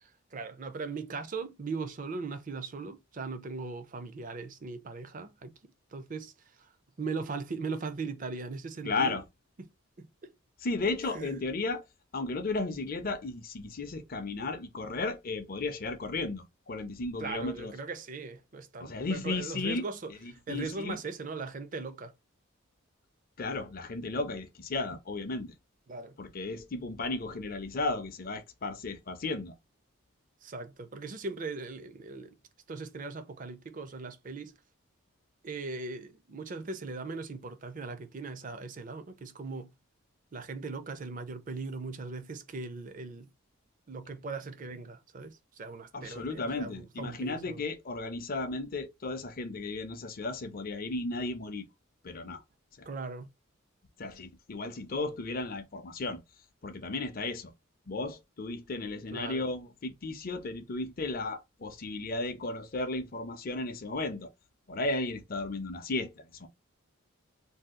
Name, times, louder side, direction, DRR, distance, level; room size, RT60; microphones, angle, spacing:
voice 1, 0.0-5.5 5.9-6.3 7.0-9.2 10.0-10.3 11.1-11.3 17.2-22.1 25.9-26.2 30.4-32.3 32.7-34.6 35.4-39.7 40.3-43.3 43.9-47.6 52.9-53.3 59.1-59.4, right 4 dB, 35° right, 0.4 m, -39 dB
voice 2, 8.8-9.2 10.6-11.8 12.1-17.7 18.8-19.8 20.1-21.0 23.4-25.5 26.2-29.5 45.9-51.6 52.0-52.4 52.8-52.9 54.0-56.2 56.6-57.5 57.9-64.3 64.7-66.5, left 3 dB, 40° left, 0.5 m, -34 dB
2.7 x 2.3 x 3.6 m
head